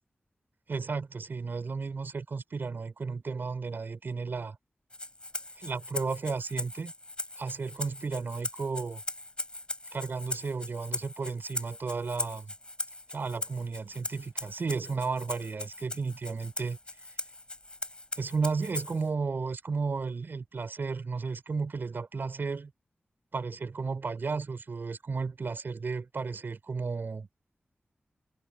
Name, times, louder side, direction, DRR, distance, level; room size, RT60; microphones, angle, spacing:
voice 1, 0.7-4.6 5.6-6.9 7.4-9.0 9.9-12.5 13.1-16.8 18.2-22.7 23.3-27.3, right 4 dB, 70° right, 6.6 m, -33 dB
Rattle (instrument), 4.9-19.1, left 2 dB, 25° left, 5.3 m, -40 dB
cardioid pair, 55°, 4 cm